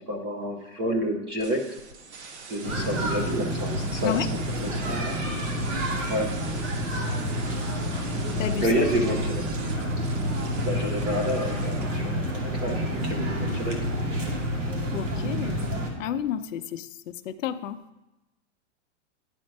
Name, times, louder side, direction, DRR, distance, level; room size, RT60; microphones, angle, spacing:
voice 1, 0.1-1.6 2.5-4.1 4.6-5.2 6.1-6.3 8.6-9.5 10.6-13.8, equal, 15° right, 3 dB, 0.6 m, -29 dB
sound 1, 1.4-11.8, right 4 dB, 65° right, 1.2 m, -44 dB
sound 2, 2.6-15.9, equal, 85° right, 2.2 m, -29 dB
voice 2, 8.4-8.7 14.9-15.6 16.0-17.8, left 9 dB, 90° left, 8 dB, 0.7 m, -31 dB
10.5 x 4.4 x 5.2 m, 0.98 s
supercardioid pair, 170°, 37 cm